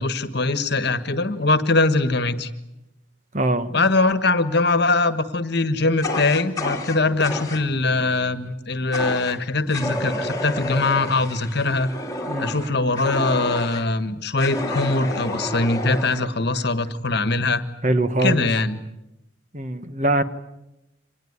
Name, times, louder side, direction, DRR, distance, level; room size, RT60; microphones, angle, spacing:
voice 1, 0.0-2.5 3.7-11.9 12.4-17.6 18.2-18.8, left 3 dB, 55° left, 11 dB, 1.5 m, -22 dB
voice 2, 3.3-3.8 12.3-12.8 17.8-18.5 19.5-20.2, right 2 dB, 35° right, 10 dB, 1.2 m, -23 dB
Fire, 6.0-7.6 8.9-9.4 9.7-13.9 14.4-16.2, left 1 dB, 15° left, 2.8 m, -30 dB
25.5 x 20.0 x 9.6 m, 0.93 s
head